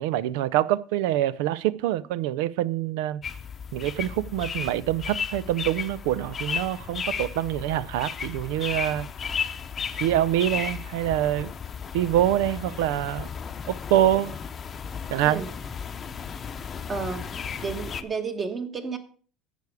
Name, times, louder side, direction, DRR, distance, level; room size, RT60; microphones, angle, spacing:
voice 1, 0.0-3.2 3.7-9.1 10.0-11.5 11.9-13.3 13.7-14.3 15.1-15.4, right 13 dB, 80° right, 0.5 m, -25 dB
sound 1, 3.2-18.0, left 6 dB, 25° left, 0.8 m, -34 dB
voice 2, 16.9-17.3 17.6-19.0, right 5 dB, 25° right, 1.4 m, -31 dB
11.5 x 8.3 x 4.8 m
cardioid pair, 145°, 0 cm